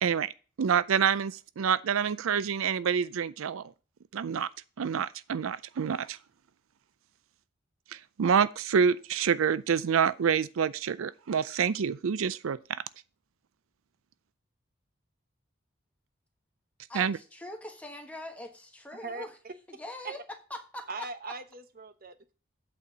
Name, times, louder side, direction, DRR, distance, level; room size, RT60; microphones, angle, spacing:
voice 1, 0.0-0.3 0.6-3.7 4.1-4.5 4.8-6.2 7.9-12.8 16.9-17.2, right 7 dB, 85° right, 0.4 m, -27 dB
voice 2, 16.9-19.3 19.7-20.2 20.5-20.9, left 1 dB, 5° left, 1.3 m, -42 dB
voice 3, 18.9-19.5 20.0-20.1 20.9-22.3, right 3 dB, 45° right, 0.9 m, -40 dB
8.4 x 4.3 x 6.7 m
head